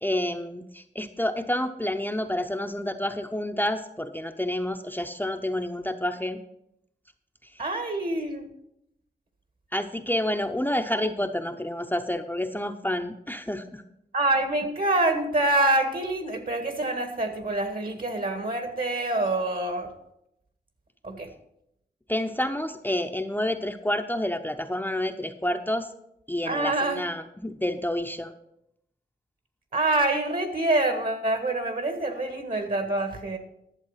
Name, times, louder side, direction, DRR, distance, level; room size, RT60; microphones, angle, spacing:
voice 1, 0.0-6.4 9.7-13.8 22.1-25.9 26.3-28.3, left 1 dB, 10° left, 5 dB, 0.7 m, -29 dB
voice 2, 7.6-8.5 14.1-19.9 21.0-21.3 26.5-27.1 29.7-33.4, right 2 dB, 55° right, 6 dB, 1.8 m, -26 dB
11.5 x 7.4 x 5.7 m, 0.79 s
wide cardioid pair, 80°, 18 cm